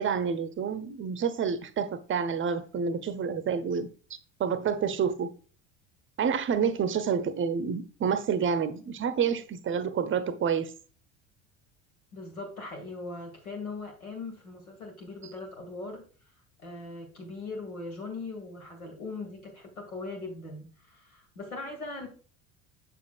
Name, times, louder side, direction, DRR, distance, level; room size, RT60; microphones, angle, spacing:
voice 1, 0.0-3.9 4.4-5.3 6.2-10.7, right 6 dB, 30° right, 0.7 m, -28 dB
voice 2, 12.1-16.0 16.6-22.1, left 3 dB, 85° left, 2.2 m, -40 dB
7.3 x 6.8 x 2.4 m
figure-of-eight pair, 70°, 42 cm